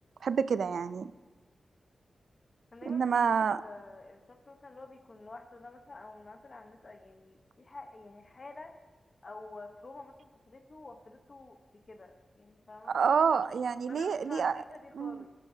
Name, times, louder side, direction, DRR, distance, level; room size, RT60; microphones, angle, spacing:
voice 1, 0.2-1.1 2.9-3.6 12.9-14.6 15.0-15.2, right 6 dB, 85° right, 15 dB, 0.3 m, -28 dB
voice 2, 2.7-8.8 9.2-13.0 13.9-15.3, left 2 dB, 45° left, 6 dB, 0.9 m, -49 dB
16.5 x 10.5 x 2.7 m, 1.3 s
wide cardioid pair, 80°, 0 cm